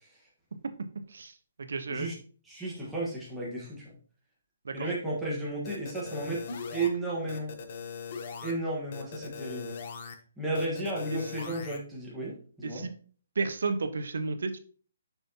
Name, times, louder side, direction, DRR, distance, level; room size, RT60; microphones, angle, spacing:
voice 1, 1.1-2.1 4.6-4.9 11.1-11.2 12.6-12.9 13.4-14.6, right 4 dB, 80° right, 9 dB, 0.8 m, -32 dB
voice 2, 2.5-3.9 4.7-7.5 8.4-9.7 10.4-12.9, right 2 dB, 5° right, -6 dB, 1.3 m, -33 dB
sound 1, 5.6-6.9 7.3-8.5 8.9-10.1 10.5-11.8, left 6 dB, 35° left, 0.7 m, -40 dB
6.8 x 6.0 x 2.8 m, 0.43 s
hypercardioid pair, 180°, 0 cm